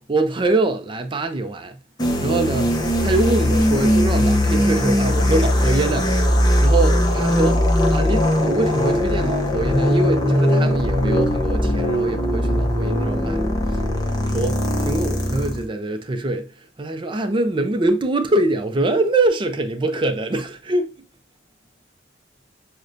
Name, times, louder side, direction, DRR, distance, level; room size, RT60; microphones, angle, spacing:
voice 1, 0.1-1.8 2.2-2.7 3.0-7.6 7.9-13.4 14.1-20.9, right 2 dB, 25° right, 0.4 m, -24 dB
sound 1, 2.0-15.6, equal, 20° left, 0.6 m, -19 dB
6.3 x 2.2 x 2.4 m
head